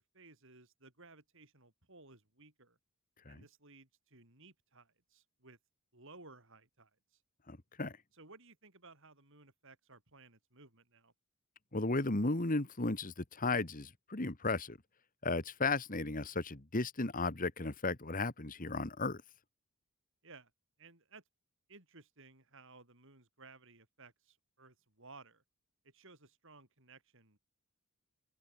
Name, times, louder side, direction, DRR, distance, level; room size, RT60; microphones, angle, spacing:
voice 1, 0.0-2.8 3.3-5.6 5.9-7.2 8.1-11.1 20.2-20.5 20.8-21.2 21.7-25.4 25.8-27.4, right 3 dB, 60° right, 7.1 m, -58 dB
voice 2, 7.5-8.0 11.7-14.8 15.2-19.2, left 3 dB, 40° left, 1.6 m, -35 dB
head